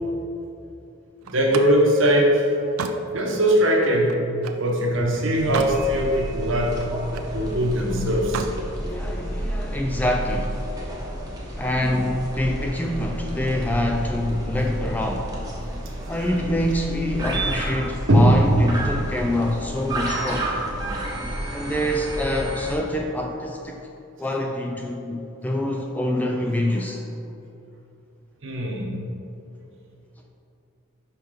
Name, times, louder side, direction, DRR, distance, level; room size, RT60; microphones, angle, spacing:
voice 1, 1.3-2.5 3.1-4.2 4.6-6.8 7.3-8.5 16.2-16.3 18.1-18.6 28.4-28.9, equal, 60° right, 0 dB, 1.1 m, -20 dB
Slam, 1.3-4.7 5.2-5.8 6.2-7.4 8.2-8.6, right 5 dB, 80° right, 0.5 m, -34 dB
sound 1, 5.3-22.8, right 1 dB, 15° right, 1.0 m, -31 dB
voice 2, 8.8-10.6 11.6-15.4 16.1-20.5 21.5-23.9 24.2-27.0, left 1 dB, 10° left, 2 dB, 0.3 m, -26 dB
5.6 x 5.5 x 5.1 m, 2.8 s
head